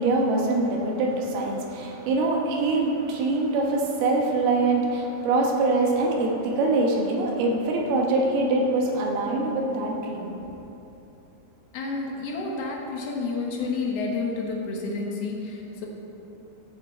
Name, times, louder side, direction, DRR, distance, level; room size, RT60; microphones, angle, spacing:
voice 1, 0.0-10.6, right 2 dB, 80° right, 0 dB, 3.1 m, -24 dB
voice 2, 11.7-15.9, left 3 dB, 75° left, -1 dB, 1.4 m, -30 dB
14.5 x 7.1 x 4.3 m, 2.9 s
omnidirectional pair, 4.5 m